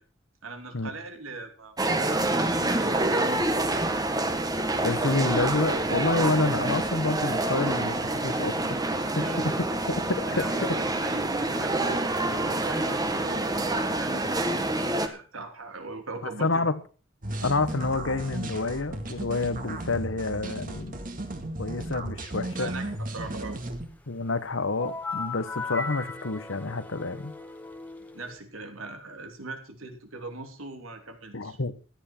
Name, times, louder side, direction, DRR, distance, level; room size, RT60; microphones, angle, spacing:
voice 1, 0.4-3.4 9.2-9.8 10.3-16.7 22.6-23.6 28.1-31.6, right 3 dB, 90° right, 3.2 m, -41 dB
sound 1, 1.8-15.1, right 2 dB, 20° right, 1.4 m, -27 dB
voice 2, 4.8-9.3 10.1-10.7 16.2-16.8 17.4-21.0 21.6-22.7 24.1-27.3 31.3-31.8, left 3 dB, 70° left, 1.2 m, -28 dB
sound 2, 17.2-23.9, right 1 dB, 40° right, 2.1 m, -35 dB
sound 3, 24.8-28.4, left 4 dB, 10° left, 1.6 m, -37 dB
16.0 x 11.5 x 4.5 m
head